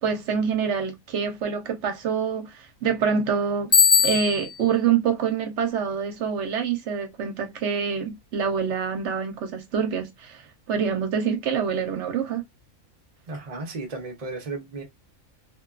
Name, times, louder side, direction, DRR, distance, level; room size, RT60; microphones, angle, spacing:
voice 1, 0.0-3.7 4.0-12.4, right 6 dB, 65° right, 0.9 m, -26 dB
Bicycle bell, 3.7-4.7, left 6 dB, 30° left, 0.9 m, -19 dB
voice 2, 13.3-14.8, right 3 dB, 50° right, 0.4 m, -34 dB
2.8 x 2.2 x 2.3 m
omnidirectional pair, 1.4 m